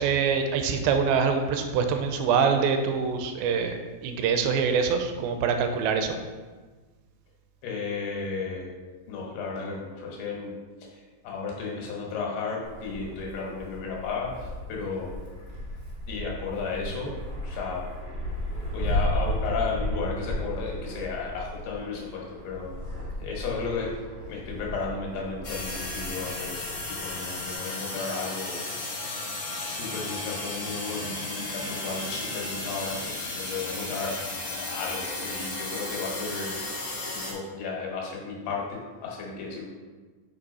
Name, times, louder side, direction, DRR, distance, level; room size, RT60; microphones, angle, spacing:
voice 1, 0.0-6.2, right 6 dB, 80° right, 6 dB, 2.3 m, -25 dB
voice 2, 7.6-8.7 9.1-15.2 16.1-17.2 17.4-17.9 18.5-23.9 24.3-28.9 29.6-36.6 37.1-39.7, left 4 dB, 85° left, -1 dB, 3.3 m, -34 dB
Wind, 12.6-27.5, equal, 45° right, 0.6 m, -35 dB
sound 1, 25.4-37.3, left 2 dB, 55° left, 1.7 m, -34 dB
5.9 x 5.4 x 4.1 m, 1.3 s
omnidirectional pair, 4.5 m